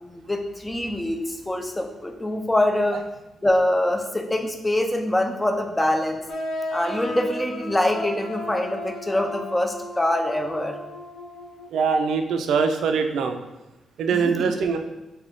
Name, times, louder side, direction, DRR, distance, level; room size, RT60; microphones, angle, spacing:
voice 1, 0.0-3.0 3.4-6.2 6.7-10.8 14.1-14.5, left 1 dB, 10° left, 3 dB, 0.3 m, -24 dB
sound 1, 6.3-11.8, left 1 dB, 80° left, 0.7 m, -34 dB
voice 2, 11.7-13.4 14.0-14.8, right 5 dB, 80° right, 5 dB, 0.3 m, -22 dB
3.7 x 2.2 x 3.5 m, 1.0 s
wide cardioid pair, 145°, 0 cm